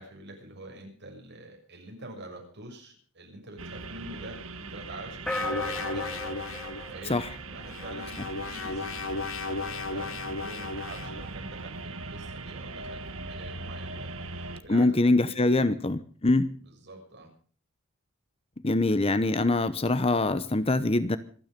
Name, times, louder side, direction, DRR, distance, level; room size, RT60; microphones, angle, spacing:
voice 1, 0.0-15.7 16.6-17.3, right 1 dB, 55° right, 7.0 m, -46 dB
sound 1, 3.6-14.6, right 3 dB, 70° right, 1.5 m, -40 dB
sound 2, 5.3-6.9 7.6-11.3, left 3 dB, 65° left, 1.2 m, -35 dB
sound 3, 5.3-7.9, left 1 dB, 5° left, 1.7 m, -35 dB
voice 2, 14.7-16.5 18.6-21.2, left 2 dB, 25° left, 0.9 m, -24 dB
26.0 x 9.7 x 5.2 m
head